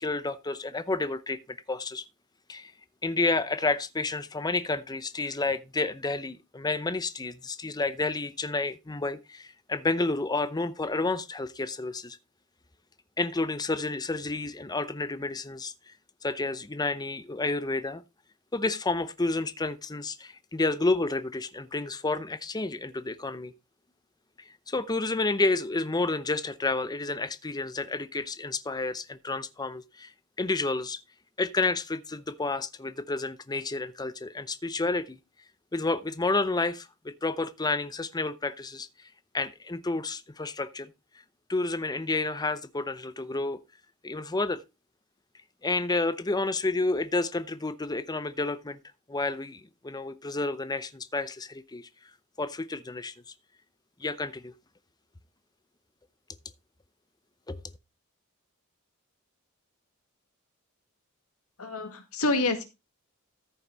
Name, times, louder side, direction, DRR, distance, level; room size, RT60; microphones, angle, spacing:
voice 1, 0.0-2.0 2.5-2.7 3.0-12.2 13.2-15.7 16.2-18.0 18.5-23.5 24.7-30.1 30.4-31.0 31.4-35.2 35.7-38.9 39.3-40.9 41.5-43.6 44.0-44.6 45.6-48.8 49.1-51.9 52.4-53.1 54.0-54.5 57.5-57.6, left 3 dB, 20° left, 0.7 m, -30 dB
voice 2, 61.6-62.6, left 2 dB, 85° left, 2.1 m, -27 dB
14.0 x 5.8 x 4.0 m
head